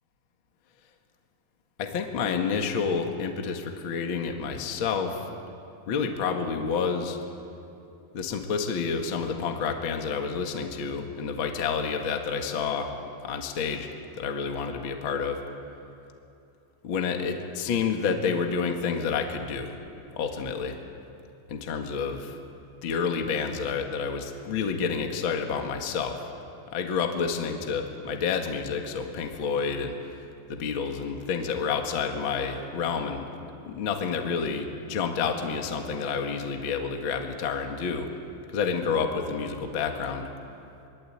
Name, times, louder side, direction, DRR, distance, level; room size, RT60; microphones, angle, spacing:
voice 1, 1.8-5.2 5.9-7.2 8.1-12.9 13.2-13.9 14.2-15.4 16.8-19.7 20.1-20.8 21.5-22.3 22.8-26.3 26.7-29.9 30.5-33.2 33.7-38.1 38.5-40.2, left 5 dB, 80° left, 4 dB, 1.1 m, -29 dB
23.5 x 23.0 x 8.7 m, 2.7 s
omnidirectional pair, 5.2 m